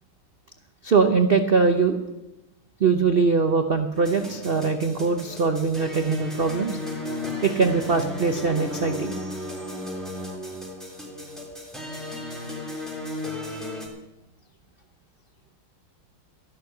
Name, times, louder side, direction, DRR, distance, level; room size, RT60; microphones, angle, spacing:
voice 1, 0.8-2.0 2.8-6.8 7.4-9.1, right 4 dB, 85° right, 6 dB, 0.5 m, -22 dB
sound 1, 3.9-13.9, left 1 dB, ahead, 3.3 m, -35 dB
13.5 x 11.5 x 6.6 m, 0.97 s
omnidirectional pair, 2.3 m